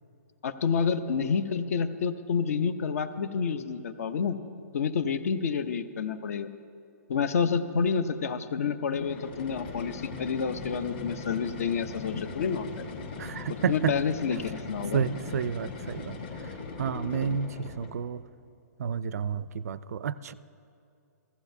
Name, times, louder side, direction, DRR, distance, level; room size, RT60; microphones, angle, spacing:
voice 1, 0.4-4.4 4.7-6.5 7.1-12.7 13.7-15.0, left 6 dB, 55° left, 12 dB, 0.6 m, -29 dB
sound 1, 8.9-18.0, left 4 dB, 35° left, 1.0 m, -39 dB
voice 2, 13.2-13.9 14.9-16.2 16.8-18.2 18.8-20.3, right 7 dB, 65° right, 17 dB, 0.4 m, -30 dB
15.0 x 15.0 x 2.7 m, 2.6 s
hypercardioid pair, 165°, 9 cm